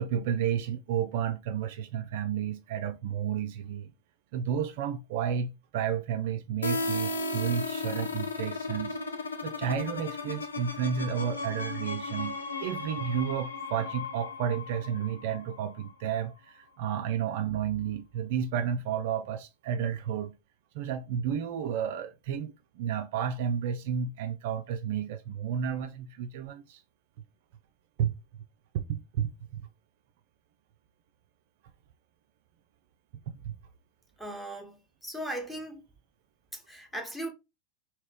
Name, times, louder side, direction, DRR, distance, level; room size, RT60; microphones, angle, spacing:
voice 1, 0.0-3.9 4.3-9.0 9.4-20.3 20.7-26.8 28.0-28.1 28.7-29.6 33.3-33.5, right 8 dB, 50° right, 0.3 m, -32 dB
sound 1, 6.6-16.2, left 3 dB, 70° left, 0.5 m, -35 dB
voice 2, 34.2-35.8 36.5-37.3, right 1 dB, ahead, 0.9 m, -38 dB
3.1 x 2.8 x 3.5 m
figure-of-eight pair, 90°, 0 cm